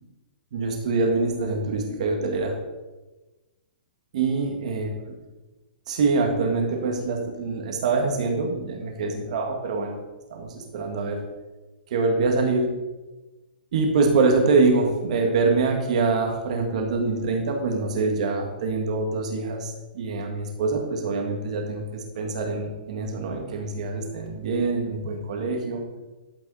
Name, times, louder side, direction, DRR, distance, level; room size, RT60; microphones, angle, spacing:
voice 1, 0.5-2.6 4.1-5.1 5.9-10.0 10.3-11.2 11.9-12.7 13.7-25.8, right 3 dB, 40° right, 3 dB, 1.9 m, -25 dB
11.5 x 8.6 x 4.2 m, 1.2 s
hypercardioid pair, 180°, 5 cm